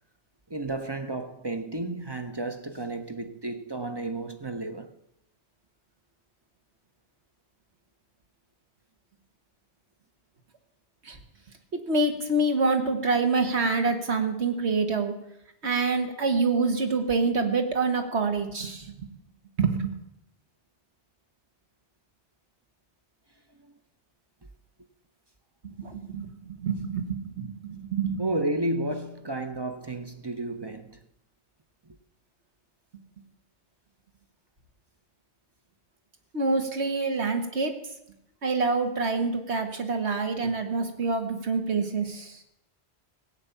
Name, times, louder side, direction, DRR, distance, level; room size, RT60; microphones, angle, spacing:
voice 1, 0.5-4.9 23.6-23.7 28.2-31.0, right 2 dB, 25° right, 0.7 m, -32 dB
voice 2, 11.9-15.1 15.6-19.1 19.6-19.9 25.8-28.2 36.3-37.8 38.4-42.4, right 3 dB, 75° right, 1.8 m, -26 dB
16.0 x 8.8 x 6.9 m
omnidirectional pair, 1.1 m